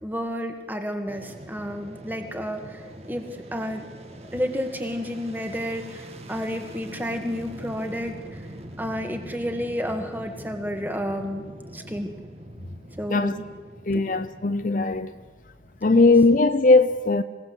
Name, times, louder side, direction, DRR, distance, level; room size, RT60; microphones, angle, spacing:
voice 1, 0.0-2.8 3.1-3.3 3.5-3.9 4.3-8.5 8.8-11.4 11.7-12.1 13.0-13.4 13.9-14.0 15.9-16.1, equal, 10° right, 2.0 m, -31 dB
Fixed-wing aircraft airplane, 1.1-16.2, right 1 dB, 35° right, 1.9 m, -43 dB
voice 2, 13.9-15.1 15.8-17.2, left 3 dB, 50° left, 0.7 m, -19 dB
26.5 x 17.0 x 8.0 m
head